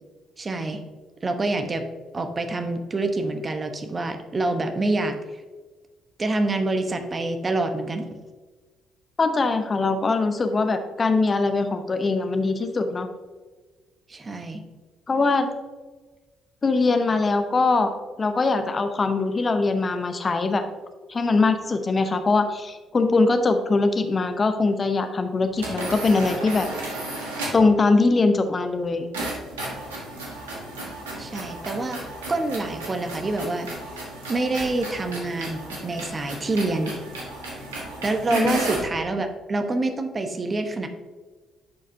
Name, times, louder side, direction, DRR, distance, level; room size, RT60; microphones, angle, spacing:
voice 1, 0.4-0.8 1.2-1.8 2.1-5.1 6.2-8.0 14.1-14.6 31.2-32.0 32.3-33.7 34.3-36.9 38.0-40.9, right 2 dB, 35° right, 6 dB, 0.9 m, -26 dB
voice 2, 9.2-13.1 15.1-15.5 16.6-17.9 18.2-20.6 21.1-26.7 27.5-29.1 38.3-38.6, left 3 dB, 35° left, 8 dB, 0.7 m, -22 dB
sound 1, 25.5-27.7 29.1-38.9, right 2 dB, 85° right, 1.4 m, -34 dB
10.0 x 4.9 x 2.7 m, 1.3 s
hypercardioid pair, 45°, 0 cm